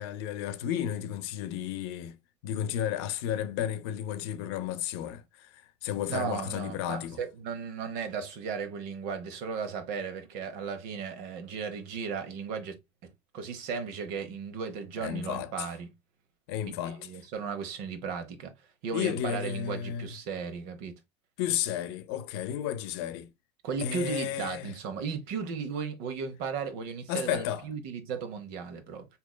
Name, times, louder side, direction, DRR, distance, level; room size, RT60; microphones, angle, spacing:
voice 1, 0.0-2.2 2.4-7.2 15.0-15.7 16.5-17.0 18.9-20.1 21.4-23.3 23.8-24.7 27.1-27.6, left 10 dB, 80° left, 0.6 m, -33 dB
voice 2, 6.1-12.8 13.0-15.9 16.8-20.9 23.6-29.1, right 6 dB, 65° right, 1.0 m, -36 dB
4.8 x 2.9 x 2.2 m
cardioid pair, 160°, 13 cm